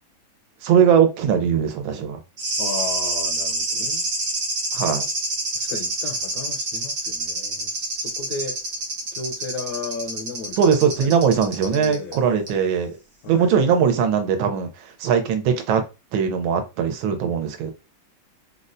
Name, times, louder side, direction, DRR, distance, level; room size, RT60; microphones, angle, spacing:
voice 1, 0.6-2.2 4.7-5.1 10.6-13.0 13.3-15.8 16.1-17.7, right 7 dB, 85° right, 1.5 m, -20 dB
sound 1, 2.4-12.2 12.5-12.6, right 2 dB, 50° right, 0.8 m, -27 dB
voice 2, 2.6-4.1 5.6-8.6 9.1-11.1 11.7-12.2 13.2-13.5, left 4 dB, 70° left, 1.1 m, -34 dB
4.0 x 2.1 x 2.5 m
omnidirectional pair, 2.2 m